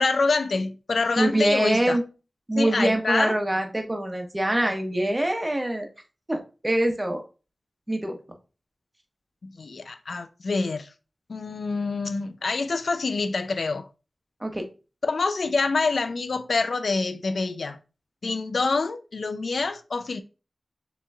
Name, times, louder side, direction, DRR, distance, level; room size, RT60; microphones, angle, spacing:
voice 1, 0.0-2.0 2.6-3.4 9.6-10.9 11.3-13.9 15.0-17.8 18.2-20.2, left 3 dB, 80° left, 0.4 m, -26 dB
voice 2, 1.2-2.0 2.5-5.9 6.3-7.2 7.9-8.2 14.4-14.6, right 1 dB, 20° right, 1.1 m, -24 dB
6.7 x 2.9 x 2.4 m
wide cardioid pair, 60°, 0 cm